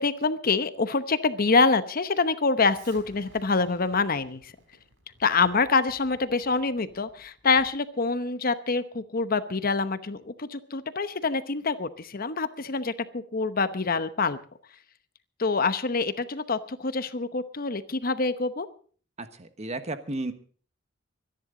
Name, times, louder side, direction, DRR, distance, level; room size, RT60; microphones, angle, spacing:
voice 1, 0.0-4.5 5.2-14.4 15.4-18.7, left 4 dB, 50° left, 12 dB, 0.9 m, -26 dB
Explosion, 2.7-7.8, right 2 dB, 80° right, 4.6 m, -56 dB
voice 2, 19.2-20.3, right 2 dB, 35° right, 10 dB, 1.2 m, -33 dB
24.5 x 10.5 x 3.9 m, 0.44 s
head